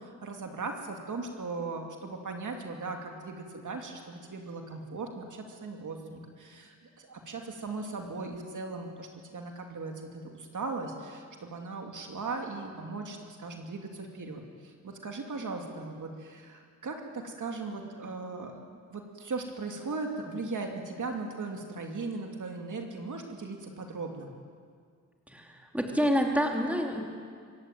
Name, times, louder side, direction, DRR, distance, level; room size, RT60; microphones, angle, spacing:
voice 1, 0.0-24.3, right 3 dB, 70° right, 2 dB, 2.7 m, -38 dB
voice 2, 25.3-27.0, equal, 5° right, 1 dB, 3.0 m, -28 dB
25.0 x 15.5 x 9.2 m, 2.1 s
wide cardioid pair, 90°, 31 cm